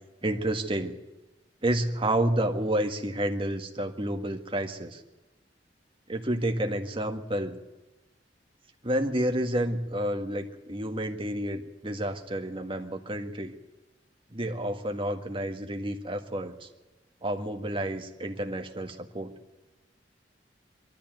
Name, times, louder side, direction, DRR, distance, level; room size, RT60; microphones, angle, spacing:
voice 1, 0.2-1.0 1.6-5.0 6.1-7.6 8.8-13.6 14.3-16.7 17.2-19.4, right 1 dB, 30° right, 5 dB, 1.8 m, -30 dB
22.0 x 13.5 x 9.2 m, 1.1 s
head